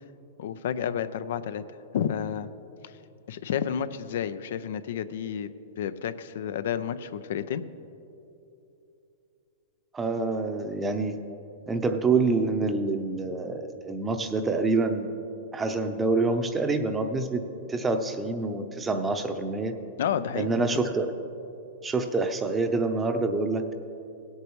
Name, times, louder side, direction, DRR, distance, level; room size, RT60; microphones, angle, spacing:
voice 1, 0.4-1.6 1.9-2.5 2.8-2.9 3.3-5.5 5.8-7.6 20.0-20.7, left 8 dB, 70° left, 13 dB, 0.5 m, -30 dB
voice 2, 9.9-11.2 11.7-15.1 15.5-19.8 20.3-21.1 21.8-23.7, right 3 dB, 15° right, 7 dB, 0.7 m, -26 dB
17.5 x 8.2 x 3.1 m, 2.8 s
hypercardioid pair, 130°, 0 cm